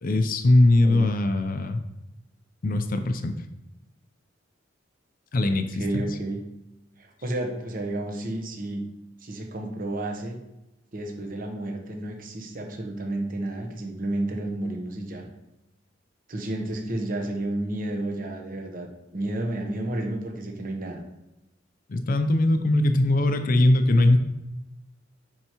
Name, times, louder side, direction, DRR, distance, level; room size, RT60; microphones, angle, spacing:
voice 1, 0.0-1.8 2.6-3.4 5.3-6.0 21.9-24.2, left 2 dB, 50° left, 8 dB, 0.5 m, -21 dB
voice 2, 5.7-6.4 7.0-8.8 9.2-10.4 10.9-15.3 16.3-21.0, right 1 dB, 45° right, 3 dB, 1.0 m, -31 dB
9.7 x 4.5 x 3.0 m, 0.96 s
head